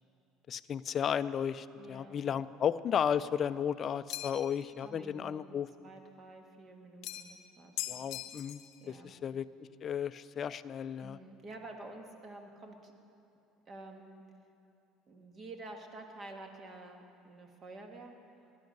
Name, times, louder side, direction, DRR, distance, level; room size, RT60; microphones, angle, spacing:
voice 1, 0.5-5.7 7.9-8.6 8.9-9.5 9.8-11.2, left 8 dB, 40° left, 15 dB, 0.4 m, -34 dB
voice 2, 1.8-2.2 4.6-8.1 8.8-9.2 11.0-12.9 13.7-14.2 15.1-18.1, right 2 dB, 35° right, 4 dB, 1.7 m, -50 dB
sound 1, 4.1-4.6 7.0-7.4 7.8-8.7, left 13 dB, 70° left, 0.7 m, -40 dB
17.0 x 12.0 x 5.3 m, 2.7 s
supercardioid pair, 110°, 0 cm